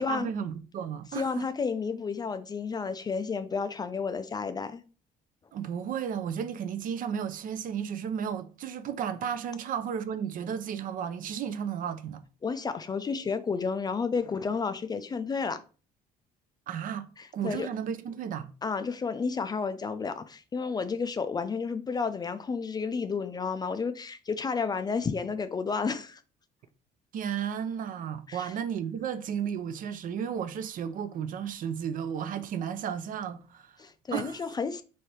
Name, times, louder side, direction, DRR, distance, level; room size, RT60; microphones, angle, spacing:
voice 1, 0.0-1.4 5.5-12.2 16.7-17.1 17.3-18.5 27.1-33.7 34.1-34.4, right 8 dB, 55° right, 0.5 m, -33 dB
voice 2, 1.1-4.8 12.4-15.6 17.2-17.7 18.6-26.2 28.3-28.5 33.8-34.8, left 5 dB, 25° left, 0.3 m, -31 dB
3.3 x 2.7 x 4.4 m
cardioid pair, 110°, 17 cm